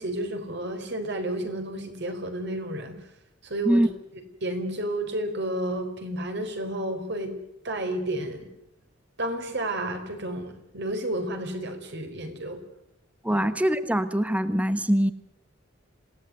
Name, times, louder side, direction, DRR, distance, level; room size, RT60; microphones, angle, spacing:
voice 1, 0.0-3.0 3.4-3.8 4.4-7.3 7.6-8.5 9.2-12.6 13.3-13.5, right 1 dB, 55° right, 6 dB, 4.6 m, -31 dB
voice 2, 13.2-15.1, equal, 5° right, 12 dB, 1.0 m, -23 dB
27.5 x 17.5 x 9.4 m, 0.81 s
head